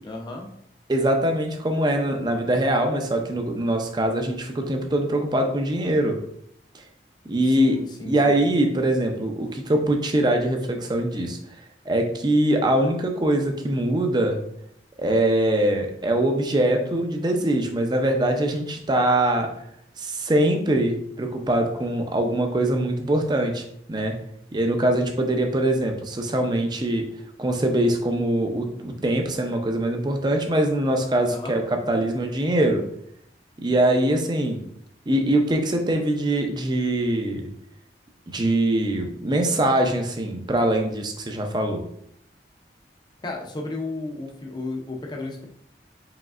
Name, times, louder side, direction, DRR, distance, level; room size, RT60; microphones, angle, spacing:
voice 1, 0.0-0.5 7.5-8.4 31.3-31.6 43.2-45.4, left 2 dB, 25° left, 1 dB, 0.6 m, -33 dB
voice 2, 0.9-6.2 6.7-6.8 7.3-7.8 8.0-11.4 11.9-14.4 15.0-19.5 20.0-24.1 24.5-27.0 27.4-32.8 33.6-34.6 35.1-37.5 38.3-41.8, right 1 dB, 25° right, 4 dB, 0.5 m, -23 dB
4.9 x 3.1 x 2.4 m, 0.70 s
head